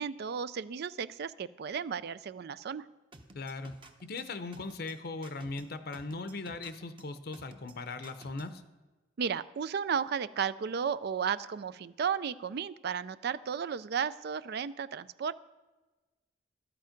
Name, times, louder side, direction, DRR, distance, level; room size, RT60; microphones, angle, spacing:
voice 1, 0.0-2.8 9.2-15.3, right 7 dB, 60° right, 16 dB, 0.4 m, -34 dB
sound 1, 3.1-8.6, right 2 dB, 25° right, 0.9 m, -53 dB
voice 2, 3.3-8.6, left 3 dB, 55° left, 10 dB, 0.7 m, -39 dB
12.5 x 9.0 x 5.1 m, 1.2 s
head